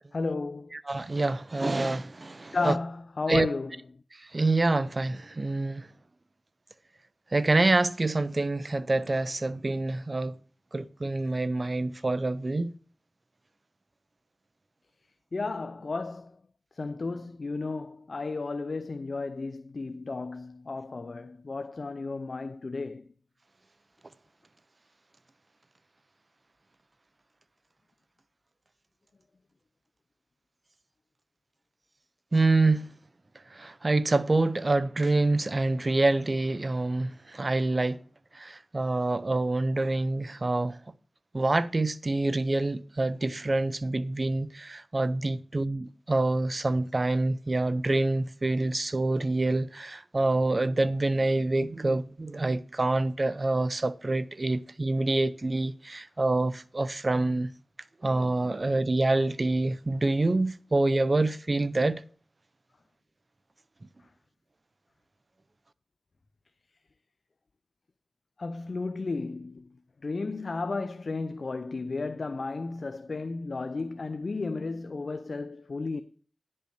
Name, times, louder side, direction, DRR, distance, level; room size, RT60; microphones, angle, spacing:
voice 1, 0.1-0.7 2.5-3.7 15.3-16.4 16.7-23.1 68.4-69.7 70.0-76.0, left 3 dB, 60° left, 0.5 m, -33 dB
voice 2, 0.7-2.7 3.3-3.5 4.3-5.8 7.3-10.3 10.7-12.7 32.3-32.9 33.5-38.0 38.4-40.8 41.3-57.5 58.0-62.0, right 2 dB, 40° right, 0.7 m, -26 dB
10.0 x 5.5 x 6.5 m
wide cardioid pair, 60°, 0 cm